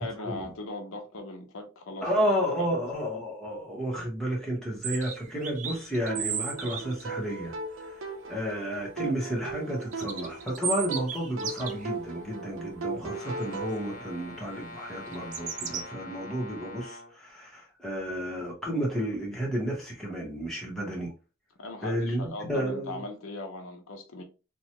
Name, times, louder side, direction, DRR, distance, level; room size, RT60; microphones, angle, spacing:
voice 1, 0.0-2.1 2.6-2.8 21.6-24.2, left 2 dB, 90° left, 0.7 m, -39 dB
voice 2, 2.0-7.5 7.8-21.1 21.8-23.0, equal, ahead, 1.1 m, -32 dB
sound 1, 4.8-7.0 9.8-11.9 13.4-13.6 15.1-15.8, right 7 dB, 35° right, 0.4 m, -34 dB
sound 2, 6.1-13.8, right 3 dB, 80° right, 0.6 m, -38 dB
Brass instrument, 13.1-17.1, left 1 dB, 40° left, 0.6 m, -44 dB
2.9 x 2.3 x 2.9 m
head